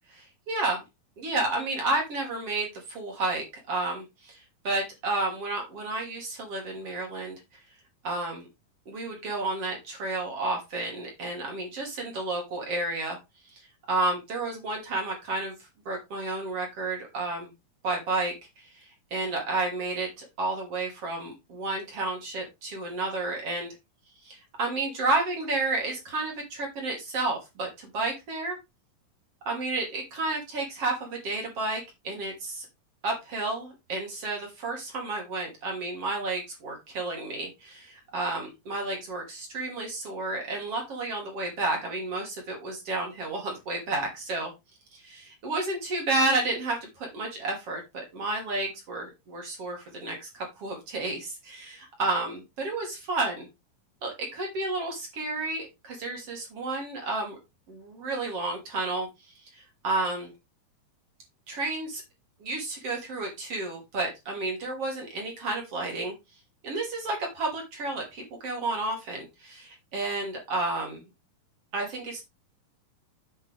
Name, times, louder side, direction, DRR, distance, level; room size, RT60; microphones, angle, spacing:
voice 1, 0.1-0.8 1.2-7.4 8.0-8.5 8.9-13.2 13.9-15.6 15.9-17.5 17.8-18.7 19.1-23.7 24.2-28.6 29.5-32.7 33.0-44.5 44.9-53.5 54.0-57.4 57.7-59.1 59.5-60.3 61.5-62.0 62.4-66.1 66.6-71.0 71.7-72.2, right 2 dB, 45° right, 1 dB, 3.7 m, -31 dB
8.8 x 7.0 x 3.4 m, 0.23 s
omnidirectional pair, 4.1 m